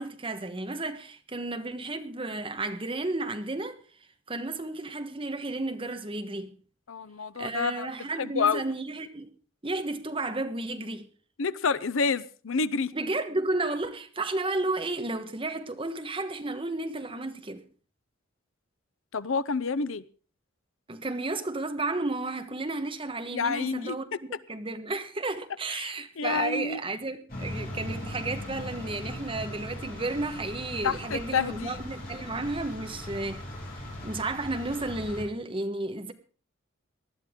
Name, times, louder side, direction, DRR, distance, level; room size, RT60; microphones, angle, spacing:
voice 1, 0.0-3.8 4.3-6.5 7.4-9.3 9.6-11.1 12.9-17.6 20.9-33.5 34.0-36.1, right 2 dB, 25° right, 1.3 m, -32 dB
voice 2, 6.9-7.9 8.2-8.6 11.4-12.9 19.1-20.0 23.3-23.9 25.7-26.8 30.8-31.8, left 5 dB, 80° left, 0.7 m, -28 dB
sound 1, 27.3-35.2, left 1 dB, 45° left, 6.5 m, -39 dB
19.5 x 12.5 x 3.7 m
head